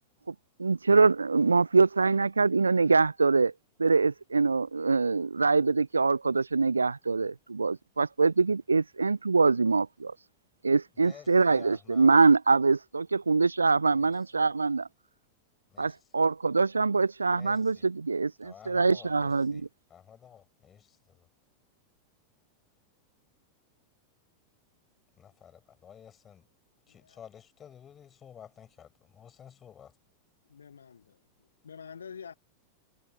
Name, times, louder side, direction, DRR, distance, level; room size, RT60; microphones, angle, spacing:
voice 1, 0.6-3.5 3.8-10.1 10.6-14.9 15.8-19.6, right 4 dB, 80° right, 0.4 m, -24 dB
voice 2, 10.9-12.1 13.9-14.5 15.7-16.1 17.3-17.9 18.4-21.3 25.2-26.5 26.9-30.0, left 8 dB, 25° left, 6.5 m, -52 dB
voice 3, 30.5-31.0 31.6-32.3, left 7 dB, 70° left, 0.5 m, -45 dB
figure-of-eight pair, 90°, 0 cm